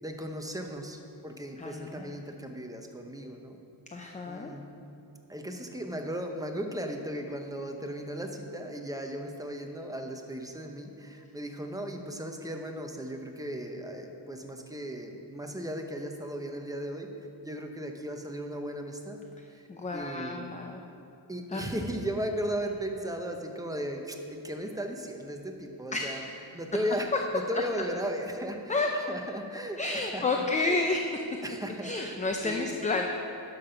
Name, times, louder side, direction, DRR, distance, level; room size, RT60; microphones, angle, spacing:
voice 1, 0.0-3.6 4.3-4.7 5.3-17.1 17.4-19.2 19.5-19.6 19.9-20.5 21.3-26.2 26.5-30.8 31.4-32.8, equal, 10° right, 3 dB, 0.8 m, -36 dB
voice 2, 1.6-2.1 3.9-4.5 19.7-20.8 21.5-21.7 25.9-26.2 28.7-28.9 29.8-31.0 31.8-33.1, left 3 dB, 15° left, 2 dB, 0.5 m, -30 dB
12.0 x 5.8 x 5.7 m, 2.8 s
wide cardioid pair, 120°, 46 cm